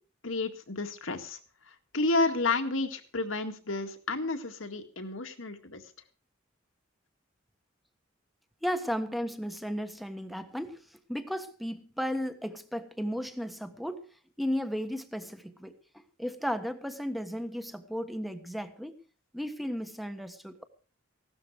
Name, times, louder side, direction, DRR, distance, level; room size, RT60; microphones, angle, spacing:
voice 1, 0.2-1.4 1.9-5.8, left 3 dB, 80° left, 6 dB, 2.0 m, -31 dB
voice 2, 8.6-10.8 11.1-14.1 14.4-18.9 19.3-20.6, equal, ahead, 9 dB, 1.4 m, -34 dB
16.0 x 12.5 x 4.9 m, 0.38 s
head